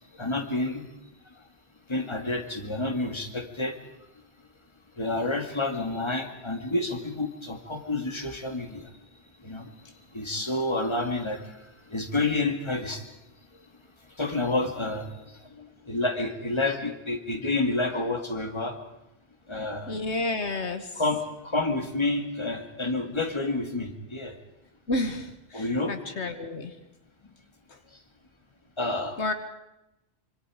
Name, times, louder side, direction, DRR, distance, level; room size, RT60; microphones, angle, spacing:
voice 1, 0.2-0.8 1.9-3.7 5.0-8.8 9.4-9.7 10.1-11.4 11.9-13.0 14.2-15.1 15.6-18.8 19.5-20.0 21.0-24.3 25.5-26.0 28.8-29.3, left 2 dB, 25° left, 5 dB, 2.2 m, -29 dB
voice 2, 19.9-21.0 24.9-26.8 27.7-27.8 29.2-29.3, left 2 dB, 70° left, 8 dB, 1.7 m, -31 dB
25.5 x 25.5 x 5.0 m, 0.90 s
omnidirectional pair, 1.2 m